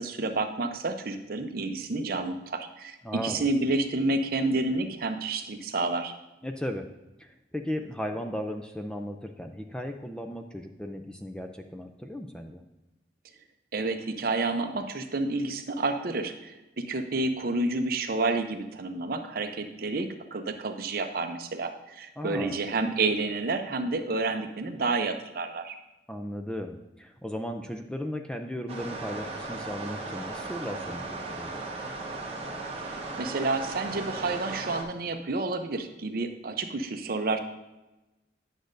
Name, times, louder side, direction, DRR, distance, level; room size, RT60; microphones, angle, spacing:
voice 1, 0.0-6.1 13.7-16.5 16.9-25.7 32.8-37.4, right 3 dB, 50° right, 7 dB, 0.6 m, -29 dB
voice 2, 3.0-3.5 6.4-6.9 7.2-12.6 22.2-22.6 26.1-31.6, equal, 5° left, 5 dB, 0.3 m, -36 dB
sound 1, 28.7-34.8, right 3 dB, 35° right, 1.0 m, -36 dB
10.0 x 6.4 x 2.6 m, 1.0 s
head